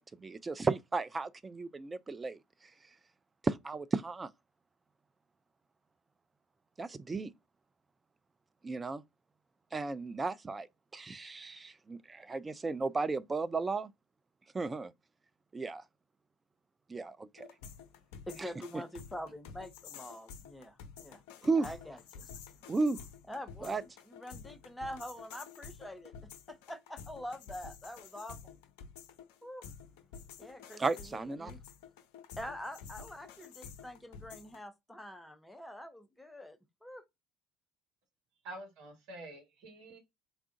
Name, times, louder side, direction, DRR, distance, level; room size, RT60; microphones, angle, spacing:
voice 1, 0.0-2.7 3.4-4.3 6.8-7.3 8.6-9.0 9.7-10.7 10.9-13.9 14.5-14.9 15.5-15.8 16.9-17.5 18.4-18.8 21.4-21.7 22.7-23.0 23.6-23.8 30.8-31.5, right 3 dB, 25° right, 0.4 m, -34 dB
sound 1, 17.4-34.6, left 6 dB, 65° left, 0.4 m, -50 dB
voice 2, 18.3-22.3 23.3-23.8 24.1-28.6 29.4-29.7 30.4-30.8 31.1-31.6 32.4-37.0, equal, 10° left, 0.7 m, -45 dB
voice 3, 38.4-40.0, right 1 dB, 60° right, 1.3 m, -47 dB
3.4 x 2.4 x 3.8 m
figure-of-eight pair, 60°, 0 cm